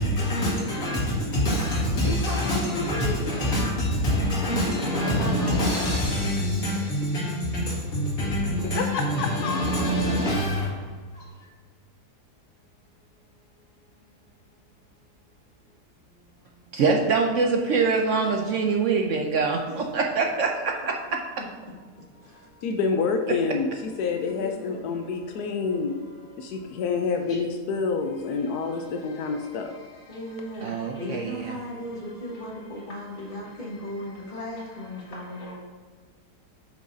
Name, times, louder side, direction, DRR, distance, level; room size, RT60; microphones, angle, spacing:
voice 1, 0.0-10.9 11.1-11.2 25.0-25.6 26.2-26.5 27.2-27.4 30.7-31.0 35.0-35.5, equal, 60° left, 2.6 m, -26 dB
voice 2, 1.9-3.6 5.0-6.0 19.7-19.9 22.2-22.5 24.2-24.8 30.1-35.5, left 1 dB, 35° left, 1.8 m, -35 dB
voice 3, 8.6-9.9 22.6-26.0 26.4-29.7, left 5 dB, 80° left, 1.2 m, -28 dB
voice 4, 16.7-21.2 30.6-31.4, right 4 dB, 65° right, 0.8 m, -24 dB
8.0 x 6.3 x 2.7 m
omnidirectional pair, 1.7 m